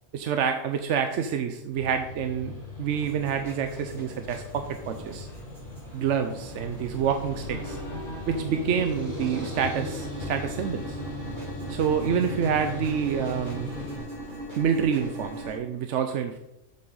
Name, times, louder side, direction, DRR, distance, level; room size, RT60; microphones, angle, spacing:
voice 1, 0.1-5.3 5.9-7.8 8.3-11.0 11.7-13.7 14.6-16.4, right 7 dB, 70° right, 7 dB, 0.9 m, -27 dB
sound 1, 1.7-14.0, left 1 dB, 60° left, 3.1 m, -39 dB
sound 2, 2.9-15.5, equal, 35° right, 3.6 m, -39 dB
7.7 x 7.5 x 3.9 m, 0.89 s
omnidirectional pair, 1.3 m